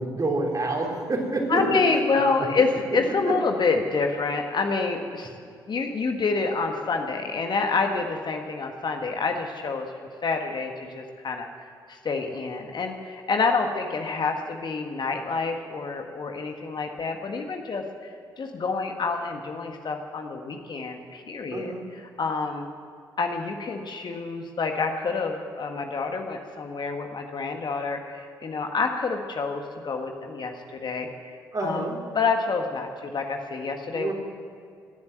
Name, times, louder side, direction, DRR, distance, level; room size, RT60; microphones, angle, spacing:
voice 1, 0.0-1.6 21.5-21.8 31.5-32.0 33.9-34.1, right 2 dB, 35° right, 0 dB, 3.7 m, -27 dB
voice 2, 1.5-5.3 5.7-9.8 10.2-22.7 23.2-31.1 31.6-31.9 32.1-34.1, left 4 dB, 45° left, 4 dB, 1.7 m, -28 dB
17.5 x 9.6 x 7.8 m, 2.3 s
figure-of-eight pair, 45°, 11 cm